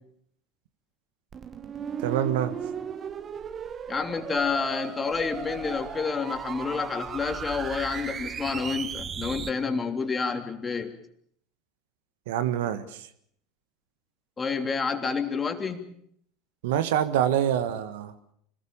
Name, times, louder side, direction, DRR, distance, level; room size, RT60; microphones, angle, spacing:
sound 1, 1.3-9.5, right 7 dB, 35° right, 1.2 m, -36 dB
voice 1, 2.0-2.6 12.3-13.0 16.6-18.1, right 10 dB, 70° right, 1.6 m, -26 dB
voice 2, 3.9-10.9 14.4-15.9, left 5 dB, 20° left, 3.3 m, -29 dB
25.5 x 20.0 x 7.2 m
hypercardioid pair, 80°, 0 cm